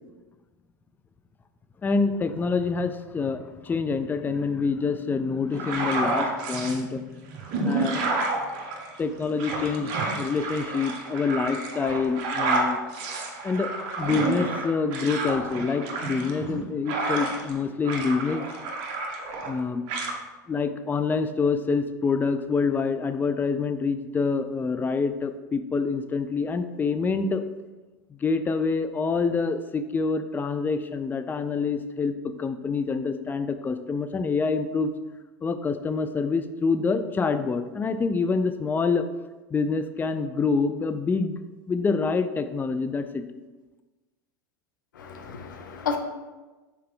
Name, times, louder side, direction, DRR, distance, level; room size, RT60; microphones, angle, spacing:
voice 1, 1.8-7.0 7.6-8.0 9.0-12.8 13.4-13.7 14.0-18.4 19.5-19.8 20.5-27.5 28.2-34.9 35.4-39.1 39.5-43.3, left 4 dB, 20° left, 9 dB, 0.4 m, -26 dB
sound 1, 5.5-6.8 7.3-17.6 17.8-19.6 19.9-20.1, right 3 dB, 55° right, 1.1 m, -30 dB
voice 2, 45.0-46.0, left 6 dB, 85° left, 5 dB, 0.8 m, -32 dB
5.8 x 4.3 x 3.7 m, 1.2 s
hypercardioid pair, 100°, 10 cm